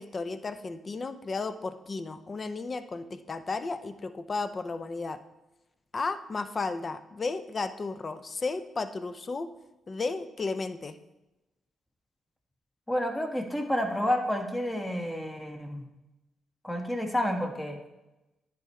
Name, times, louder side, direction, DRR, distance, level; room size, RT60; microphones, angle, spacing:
voice 1, 0.0-5.2 5.9-9.5 9.9-11.0, left 3 dB, 45° left, 11 dB, 0.5 m, -34 dB
voice 2, 12.9-15.8 16.6-17.8, equal, 15° left, 3 dB, 1.4 m, -30 dB
10.5 x 4.6 x 3.1 m, 1.0 s
supercardioid pair, 55°, 0 cm